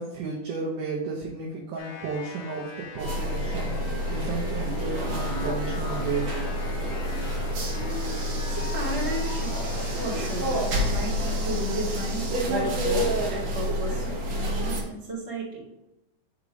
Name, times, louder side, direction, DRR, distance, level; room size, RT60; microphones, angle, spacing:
voice 1, 0.0-3.8 4.1-6.3, right 4 dB, 75° right, -1 dB, 2.0 m, -33 dB
sound 1, 1.8-10.7, left 5 dB, 75° left, 2.5 m, -42 dB
sound 2, 3.0-14.8, equal, 60° right, 2.0 m, -28 dB
voice 2, 8.5-15.6, right 1 dB, 25° right, -7 dB, 1.7 m, -34 dB
6.2 x 3.7 x 5.1 m, 0.90 s
omnidirectional pair, 4.4 m